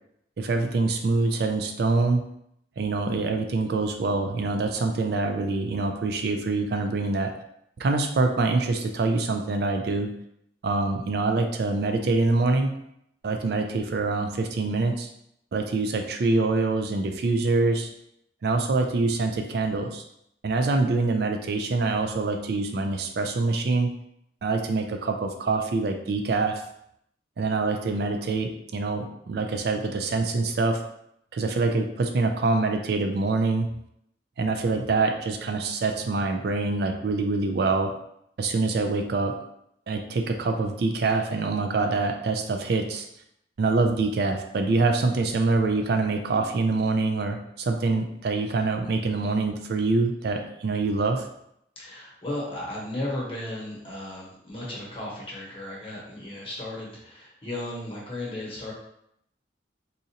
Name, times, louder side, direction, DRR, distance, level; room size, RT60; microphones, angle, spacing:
voice 1, 0.4-2.2 2.8-7.3 7.8-10.1 10.6-12.7 13.2-15.1 15.5-17.9 18.4-20.0 20.4-23.9 24.4-26.6 27.4-30.8 31.3-33.7 34.4-37.9 38.4-39.4 39.9-43.1 43.6-51.3, right 3 dB, 55° right, 5 dB, 0.3 m, -25 dB
voice 2, 51.8-58.7, left 1 dB, 30° left, -5 dB, 1.0 m, -35 dB
4.1 x 2.5 x 2.8 m, 0.75 s
head